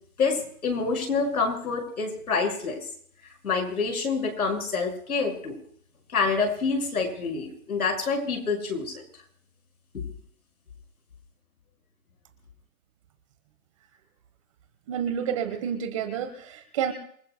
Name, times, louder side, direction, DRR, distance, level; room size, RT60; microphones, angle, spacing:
voice 1, 0.2-2.8 3.4-5.6 6.1-9.0 9.9-10.0, left 4 dB, 75° left, 2 dB, 6.0 m, -27 dB
voice 2, 14.9-16.9, right 8 dB, 20° right, 8 dB, 1.2 m, -29 dB
27.5 x 19.5 x 2.2 m, 0.62 s
hypercardioid pair, 160°, 44 cm